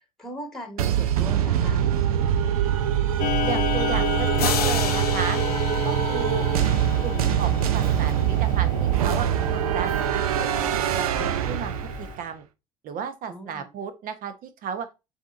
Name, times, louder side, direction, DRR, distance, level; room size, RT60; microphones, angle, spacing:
voice 1, 0.2-1.8 13.3-13.7, equal, ahead, 1.6 m, -39 dB
sound 1, 0.8-12.2, right 10 dB, 80° right, 0.5 m, -24 dB
Clock, 3.2-12.2, left 11 dB, 45° left, 0.7 m, -32 dB
voice 2, 3.4-5.4 5.8-6.5 7.0-10.0 10.3-12.4 12.8-14.9, right 7 dB, 50° right, 1.0 m, -34 dB
sound 2, 4.4-7.1, left 8 dB, 85° left, 0.6 m, -31 dB
7.2 x 2.9 x 2.5 m
hypercardioid pair, 70°, 19 cm